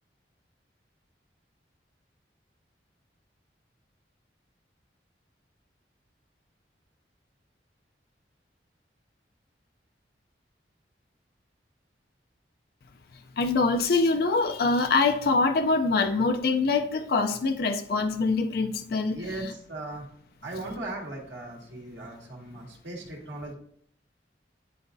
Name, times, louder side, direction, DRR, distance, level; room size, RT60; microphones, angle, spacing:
voice 1, 13.4-19.2, left 3 dB, 55° left, 7 dB, 0.4 m, -24 dB
voice 2, 19.1-20.1 20.4-23.5, right 2 dB, 85° right, -2 dB, 1.8 m, -38 dB
10.0 x 3.9 x 2.6 m, 0.64 s
head